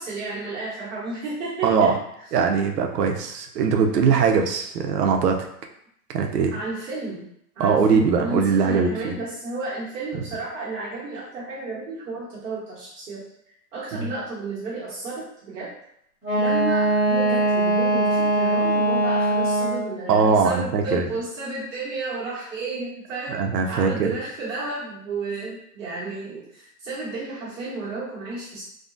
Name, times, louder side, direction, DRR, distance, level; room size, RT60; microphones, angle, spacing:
voice 1, 0.0-1.9 6.5-7.3 7.6-13.2 13.7-15.7 16.4-28.6, right 3 dB, 50° right, -8 dB, 1.2 m, -32 dB
voice 2, 1.6-2.0 2.3-5.5 6.1-6.6 7.6-9.1 13.9-14.1 20.1-21.1 23.3-24.1, right 5 dB, 80° right, 4 dB, 0.6 m, -21 dB
Wind instrument woodwind instrument, 16.2-20.0, right 1 dB, 5° right, 1.1 m, -21 dB
3.6 x 2.0 x 2.5 m, 0.73 s
hypercardioid pair, 170°, 48 cm